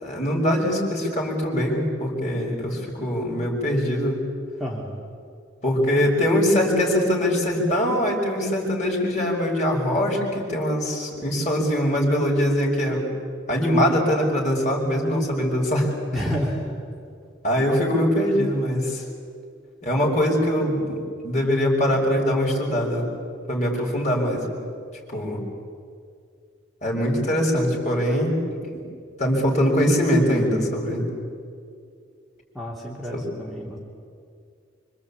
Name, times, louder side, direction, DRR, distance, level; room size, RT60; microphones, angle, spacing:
voice 1, 0.0-4.2 5.6-13.1 13.5-15.9 17.4-19.0 19.8-23.1 23.5-24.5 25.1-25.4 26.8-28.4 28.7-28.8 29.2-31.1 33.1-33.2, equal, 40° left, -1 dB, 5.9 m, -22 dB
voice 2, 4.6-5.0 16.1-16.5 32.5-33.8, equal, ahead, -4 dB, 2.9 m, -30 dB
26.0 x 24.5 x 8.7 m, 2.3 s
head